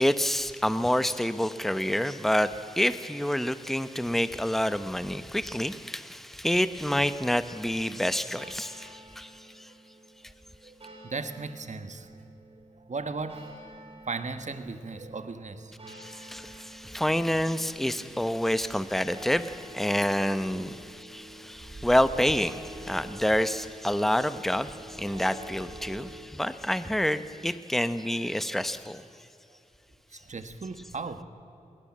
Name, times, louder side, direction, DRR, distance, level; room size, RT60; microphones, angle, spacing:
voice 1, 0.0-9.7 15.9-29.0, left 1 dB, ahead, 12 dB, 1.0 m, -28 dB
sound 1, 8.4-26.3, right 1 dB, 45° right, 4.3 m, -48 dB
voice 2, 11.0-12.2 12.9-13.5 14.1-16.5 16.9-17.0 30.1-31.2, right 4 dB, 60° right, 10 dB, 1.6 m, -37 dB
20.5 x 19.0 x 7.5 m, 2.8 s
cardioid pair, 45°, 14 cm